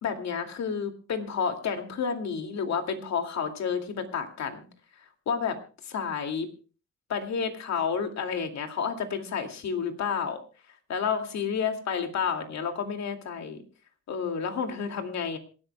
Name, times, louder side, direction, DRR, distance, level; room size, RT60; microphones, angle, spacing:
voice 1, 0.0-4.7 5.3-5.6 5.8-6.5 7.1-10.4 10.9-13.6 14.1-15.4, left 6 dB, 65° left, 5 dB, 2.3 m, -30 dB
26.5 x 11.5 x 2.2 m, 0.37 s
cardioid pair, 90°, 30 cm